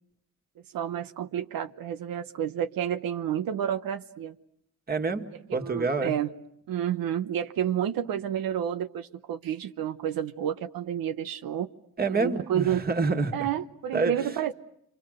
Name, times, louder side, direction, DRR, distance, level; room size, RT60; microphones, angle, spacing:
voice 1, 0.7-4.3 5.6-6.3 6.7-11.7 12.1-12.8 13.3-14.5, right 10 dB, 80° right, 7 dB, 1.0 m, -30 dB
voice 2, 4.9-6.1 12.0-13.3 13.9-14.3, right 4 dB, 25° right, 4 dB, 2.0 m, -27 dB
30.0 x 25.0 x 6.6 m, 0.75 s
cardioid pair, 130°, 34 cm